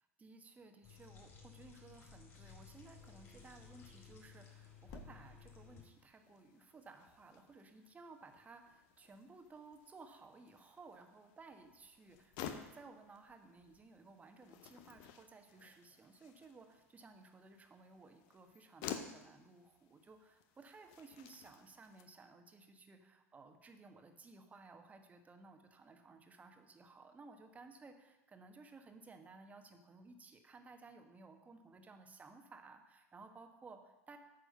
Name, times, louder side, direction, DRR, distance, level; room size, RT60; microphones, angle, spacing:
voice 1, 0.2-34.2, right 3 dB, 20° right, 6 dB, 1.3 m, -58 dB
sound 1, 0.8-5.8, left 5 dB, 30° left, 4.0 m, -57 dB
sound 2, 3.0-22.1, left 9 dB, 50° left, 0.9 m, -54 dB
9.4 x 6.4 x 6.6 m, 1.0 s
figure-of-eight pair, 80°, 8 cm